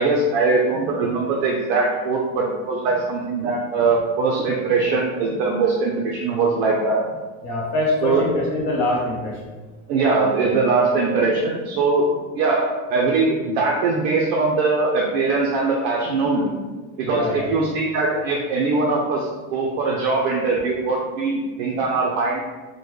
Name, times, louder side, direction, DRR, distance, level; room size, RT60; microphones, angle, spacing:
voice 1, 0.0-7.0 8.0-8.2 9.9-12.1 12.3-16.5 17.0-22.4, right 3 dB, 60° right, -2 dB, 0.5 m, -21 dB
voice 2, 7.4-9.5 17.0-17.6, left 2 dB, 35° left, -3 dB, 0.7 m, -24 dB
3.6 x 2.1 x 3.1 m, 1.3 s
cardioid pair, 170°, 35 cm